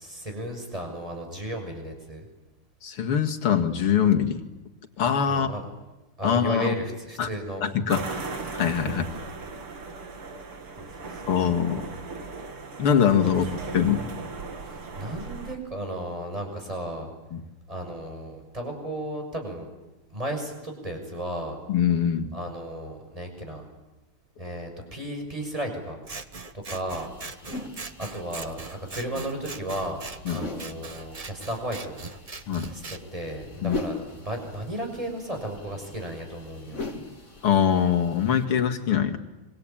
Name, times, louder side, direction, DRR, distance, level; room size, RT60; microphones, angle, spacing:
voice 1, 0.0-2.3 5.3-5.6 6.2-7.6 8.8-9.0 10.8-11.2 14.7-17.1 17.7-19.7 20.1-21.6 22.3-23.7 24.4-26.0 26.5-27.1 28.0-30.0 30.3-32.0 32.7-36.8, right 1 dB, 15° right, 4 dB, 6.5 m, -34 dB
voice 2, 2.8-4.4 5.0-5.5 6.2-6.7 7.2-7.3 7.6-8.3 8.5-9.0 11.3-11.9 12.8-14.0 17.3-17.4 21.7-22.3 30.3-30.4 32.5-32.7 33.6-33.8 37.4-39.2, left 8 dB, 80° left, 4 dB, 3.0 m, -23 dB
sound 1, 7.9-15.6, right 4 dB, 75° right, 3.4 m, -37 dB
Scissors, 26.0-33.0, right 3 dB, 30° right, 0.6 m, -41 dB
sound 2, 26.9-38.4, left 2 dB, 35° left, 3.4 m, -41 dB
26.5 x 25.0 x 9.0 m, 1.1 s
omnidirectional pair, 2.4 m